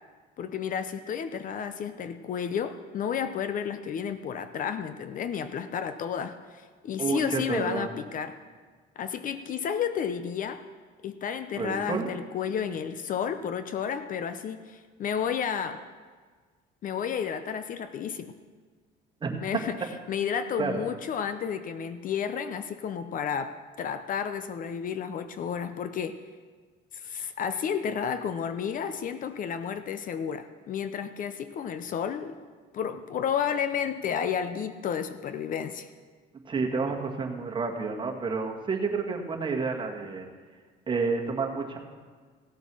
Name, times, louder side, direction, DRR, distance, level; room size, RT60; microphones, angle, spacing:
voice 1, 0.4-6.4 6.8-8.4 9.0-10.6 11.0-15.8 16.8-18.3 19.4-19.8 20.1-26.2 27.0-32.4 32.7-35.9, left 7 dB, 45° left, 10 dB, 0.7 m, -31 dB
voice 2, 7.0-7.8 11.6-12.1 19.2-19.4 20.6-20.8 36.5-40.3 40.9-41.8, right 4 dB, 25° right, 1 dB, 1.9 m, -30 dB
16.5 x 7.9 x 6.2 m, 1.5 s
cardioid pair, 115°, 18 cm